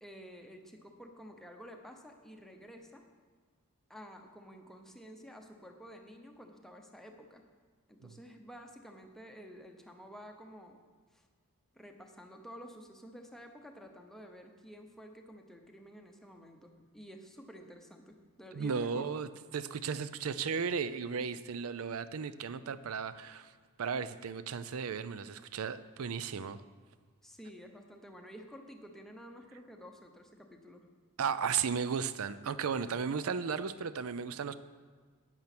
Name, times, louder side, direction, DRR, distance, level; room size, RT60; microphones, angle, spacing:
voice 1, 0.0-3.1 3.9-7.4 7.9-10.8 11.1-11.3 11.7-19.2 27.2-30.9, equal, ahead, 3 dB, 0.9 m, -51 dB
voice 2, 18.5-23.5 23.8-26.6 31.2-34.5, right 6 dB, 70° right, 14 dB, 0.5 m, -35 dB
9.0 x 8.6 x 6.0 m, 1.6 s
head